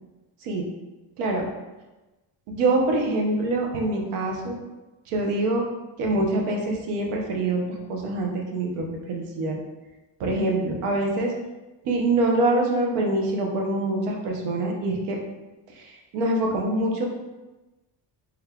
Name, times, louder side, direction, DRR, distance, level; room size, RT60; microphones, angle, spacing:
voice 1, 2.5-4.6 5.1-5.6 6.0-7.6 7.9-9.6 10.2-11.3 11.8-15.2 16.1-17.1, right 2 dB, 80° right, 1 dB, 0.8 m, -24 dB
3.4 x 2.3 x 3.4 m, 1.1 s
cardioid pair, 85°, 50 cm